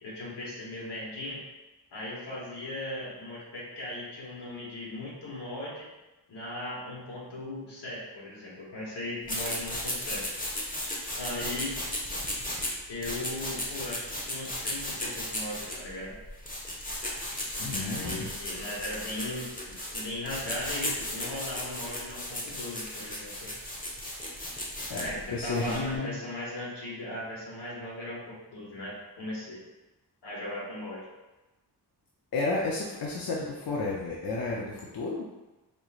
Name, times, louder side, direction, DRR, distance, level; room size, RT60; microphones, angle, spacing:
voice 1, 0.0-1.4 1.9-5.9 6.3-10.3 11.2-11.8 12.9-16.2 17.8-23.5 24.9-29.6 30.2-31.1, left 1 dB, 85° left, -4 dB, 1.4 m, -38 dB
sound 1, 9.2-26.0, left 1 dB, 20° left, 0.8 m, -35 dB
voice 2, 17.6-18.4 24.9-26.2 32.3-35.2, left 3 dB, 60° left, -3 dB, 0.6 m, -32 dB
5.0 x 3.1 x 2.4 m, 1.1 s
wide cardioid pair, 85°, 40 cm